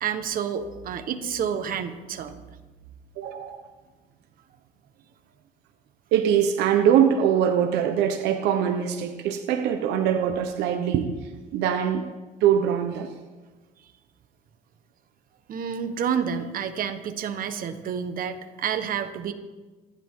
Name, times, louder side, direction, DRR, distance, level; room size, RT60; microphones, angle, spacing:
voice 1, 0.0-2.4 15.5-19.3, right 7 dB, 55° right, 8 dB, 1.4 m, -29 dB
voice 2, 3.2-3.7 6.1-11.1 11.5-12.1 12.4-13.1 16.0-16.1, right 9 dB, 85° right, 7 dB, 1.1 m, -22 dB
27.0 x 11.0 x 3.8 m, 1.2 s
cardioid pair, 110°, 17 cm